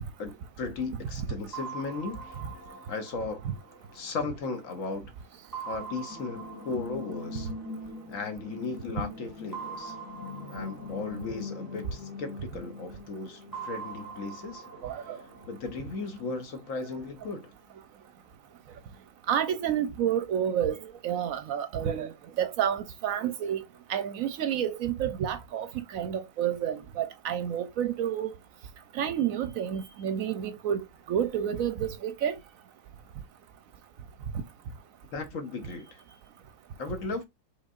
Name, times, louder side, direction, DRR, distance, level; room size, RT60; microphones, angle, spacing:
voice 1, 0.0-2.4 2.9-3.4 3.9-5.1 5.7-7.5 8.1-10.0 10.5-14.7 15.0-15.1 15.5-17.5 35.1-36.0 36.8-37.2, left 4 dB, 65° left, 1.1 m, -36 dB
sound 1, 1.5-4.9 5.5-8.4 9.5-12.6 13.5-16.6, right 6 dB, 15° left, 1.2 m, -44 dB
sound 2, 6.1-15.7 16.0-16.1, left 4 dB, 90° left, 2.1 m, -42 dB
voice 2, 14.8-15.2 19.3-20.8 21.0-22.1 22.4-23.6 23.9-25.7 25.9-28.3 29.0-32.3, right 9 dB, 70° right, 0.9 m, -29 dB
5.3 x 3.6 x 2.4 m
omnidirectional pair, 1.6 m